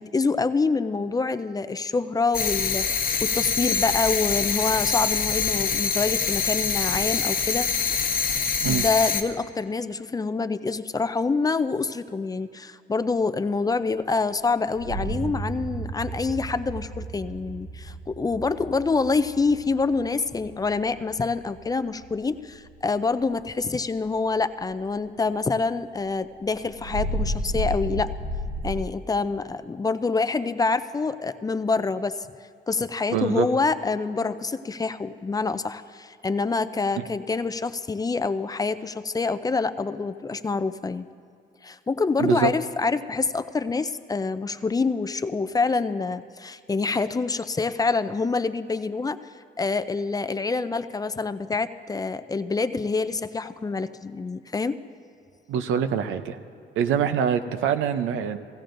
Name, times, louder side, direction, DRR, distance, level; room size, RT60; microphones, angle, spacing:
voice 1, 0.0-7.7 8.7-28.1 28.6-32.3 32.7-41.0 41.6-49.2 49.6-54.8, left 4 dB, 20° left, 12 dB, 0.4 m, -26 dB
sound 1, 2.3-9.2, left 6 dB, 45° left, 1.0 m, -25 dB
sound 2, 14.7-23.6 24.0-24.4 24.7-24.8 25.2-25.3 26.3-28.8, right 1 dB, 45° right, 0.7 m, -33 dB
voice 2, 33.1-33.5 42.2-42.5 55.5-56.4 56.8-58.4, right 8 dB, 85° right, 9 dB, 0.6 m, -24 dB
16.0 x 16.0 x 2.6 m, 2.4 s
cardioid pair, 90°, 20 cm